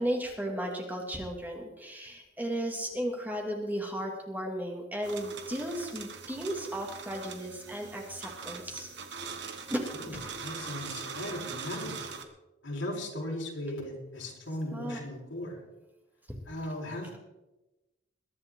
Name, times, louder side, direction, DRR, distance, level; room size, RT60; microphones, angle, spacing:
voice 1, 0.0-8.9 9.7-9.8 14.7-15.0, equal, 10° right, 0 dB, 2.3 m, -35 dB
sound 1, 5.0-12.2, right 5 dB, 65° right, 1.5 m, -42 dB
voice 2, 9.9-12.0 12.6-15.6 16.5-17.2, left 1 dB, 80° left, -2 dB, 4.7 m, -37 dB
21.5 x 11.5 x 3.8 m, 1.0 s
head